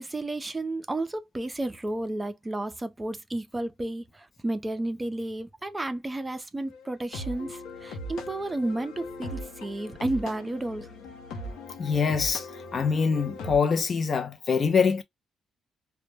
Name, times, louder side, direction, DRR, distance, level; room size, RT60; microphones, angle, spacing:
voice 1, 0.0-10.9, right 2 dB, 15° right, 0.4 m, -32 dB
sound 1, 6.7-13.6, left 1 dB, 90° left, 0.7 m, -39 dB
voice 2, 11.8-15.0, left 5 dB, 45° left, 0.5 m, -24 dB
2.1 x 2.0 x 3.1 m
cardioid pair, 90°, 0 cm